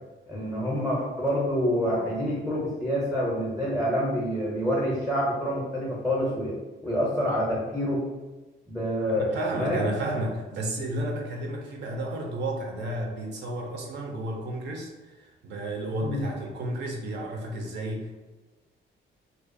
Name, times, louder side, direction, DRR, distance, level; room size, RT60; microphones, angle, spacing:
voice 1, 0.3-6.5 6.8-8.0 8.7-9.3 9.6-9.8 16.0-16.3, equal, ahead, -5 dB, 0.5 m, -27 dB
voice 2, 9.1-18.1, right 1 dB, 65° right, 1 dB, 0.4 m, -32 dB
2.3 x 2.2 x 2.5 m, 1.2 s
cardioid pair, 150°, 20 cm